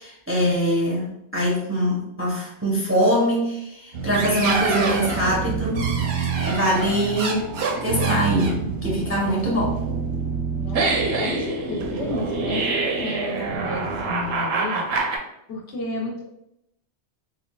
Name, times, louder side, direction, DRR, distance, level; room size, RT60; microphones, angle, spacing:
voice 1, 0.0-6.0 6.4-7.5 7.8-9.8, equal, 15° right, -4 dB, 0.5 m, -23 dB
sound 1, 3.9-15.2, right 4 dB, 70° right, 0.8 m, -26 dB
voice 2, 10.6-14.9 15.5-16.2, left 2 dB, 80° left, -1 dB, 1.1 m, -32 dB
3.7 x 2.2 x 2.2 m, 0.80 s
omnidirectional pair, 1.2 m